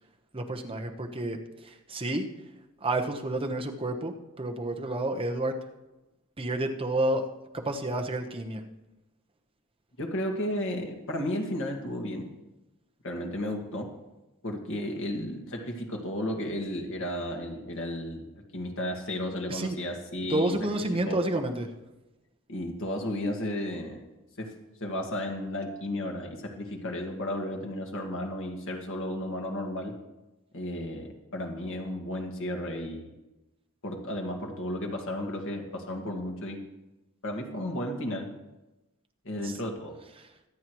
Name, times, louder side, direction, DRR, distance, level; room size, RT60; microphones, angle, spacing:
voice 1, 0.3-1.4 1.9-2.3 2.8-5.5 6.4-7.3 7.5-8.6 19.5-19.8 20.3-21.7 39.4-39.6, right 1 dB, 25° right, 3 dB, 1.1 m, -29 dB
voice 2, 10.0-12.3 13.0-13.9 14.4-18.2 18.5-20.6 21.1-21.2 22.5-24.0 24.4-24.5 24.8-29.9 30.5-33.1 33.8-36.6 37.2-38.3 39.2-39.9, left 1 dB, 65° left, 2 dB, 2.0 m, -33 dB
24.0 x 8.6 x 3.1 m, 1.0 s
head